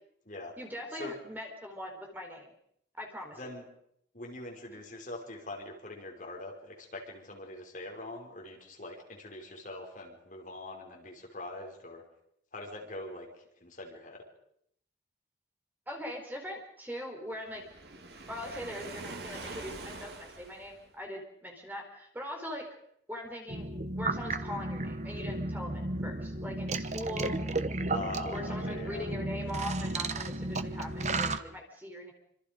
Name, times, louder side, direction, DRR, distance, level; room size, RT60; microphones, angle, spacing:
voice 1, 0.6-2.5 3.0-3.5 15.9-17.6 18.3-22.7 23.1-23.7 23.9-27.4 28.3-32.1, left 1 dB, 10° right, 2 dB, 4.5 m, -41 dB
voice 2, 3.4-3.7 4.1-12.0 12.5-13.3 13.6-14.2 27.9-29.0, left 2 dB, 40° left, 0 dB, 5.2 m, -43 dB
Waves surf, 17.5-21.0, right 3 dB, 60° right, 2.4 m, -44 dB
sound 1, 23.5-31.4, right 2 dB, 35° right, 1.1 m, -33 dB
27.5 x 26.5 x 5.3 m, 0.72 s
head